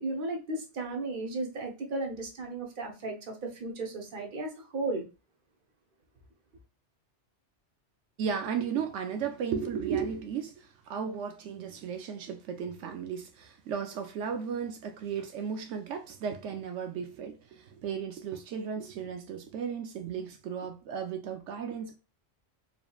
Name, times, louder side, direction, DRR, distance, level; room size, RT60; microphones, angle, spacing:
voice 1, 0.0-5.0, right 2 dB, 50° right, 1.0 m, -35 dB
voice 2, 8.2-21.9, right 7 dB, 85° right, 0.9 m, -35 dB
5.1 x 3.0 x 2.3 m
omnidirectional pair, 1.2 m